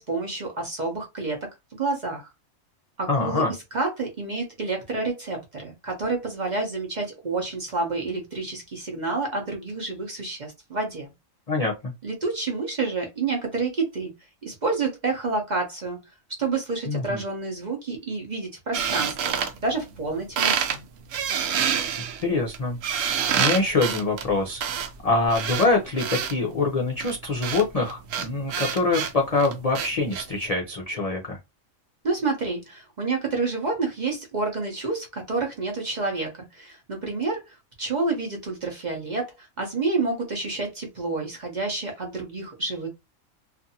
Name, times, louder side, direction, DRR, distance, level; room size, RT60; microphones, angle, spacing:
voice 1, 0.0-2.3 3.0-3.4 3.7-11.1 12.0-14.1 14.4-16.0 16.4-19.3 19.6-20.8 32.0-42.9, right 3 dB, 45° right, 0.7 m, -29 dB
voice 2, 3.1-3.5 11.5-11.9 16.9-17.2 22.2-22.8 23.1-31.4, left 3 dB, 55° left, 0.4 m, -25 dB
sound 1, 18.7-20.1 20.4-20.8 21.1-26.3 27.0-30.2, right 8 dB, 75° right, 0.9 m, -27 dB
2.5 x 2.4 x 2.7 m
omnidirectional pair, 1.4 m